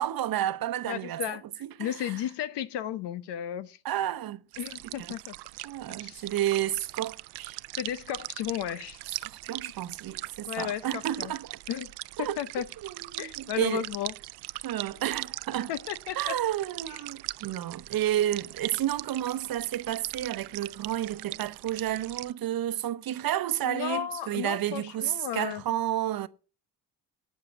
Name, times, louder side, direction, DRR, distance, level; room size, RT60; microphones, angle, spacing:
voice 1, 0.0-2.1 3.8-4.4 5.0-5.1 5.6-7.6 9.1-11.6 12.2-12.4 12.8-13.9 14.6-15.7 16.2-26.3, right 12 dB, 55° right, 0.9 m, -31 dB
voice 2, 0.9-3.8 4.6-5.3 6.0-6.2 7.8-9.0 10.5-11.3 11.7-11.9 12.2-12.7 13.2-14.1 15.7-16.4 16.9-17.0 23.6-25.6, left 11 dB, 70° left, 1.0 m, -34 dB
sound 1, 4.5-22.3, right 21 dB, 70° right, 0.5 m, -41 dB
9.1 x 7.8 x 8.4 m
supercardioid pair, 80°, 42 cm